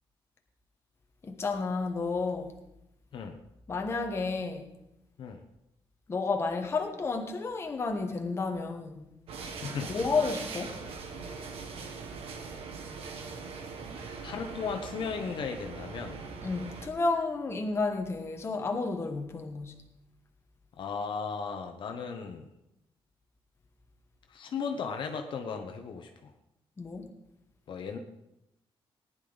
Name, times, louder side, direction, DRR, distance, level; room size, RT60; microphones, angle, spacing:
voice 1, 1.2-2.5 3.7-4.7 6.1-9.0 9.9-10.8 16.4-19.8 26.8-27.1, left 3 dB, 25° left, 1.3 m, -31 dB
sound 1, 9.3-16.9, right 4 dB, 85° right, 1.8 m, -41 dB
voice 2, 9.4-10.1 14.2-16.2 20.8-22.5 24.3-26.3 27.7-28.0, left 5 dB, 55° left, 1.0 m, -36 dB
18.0 x 11.0 x 4.0 m
wide cardioid pair, 175°, 10 cm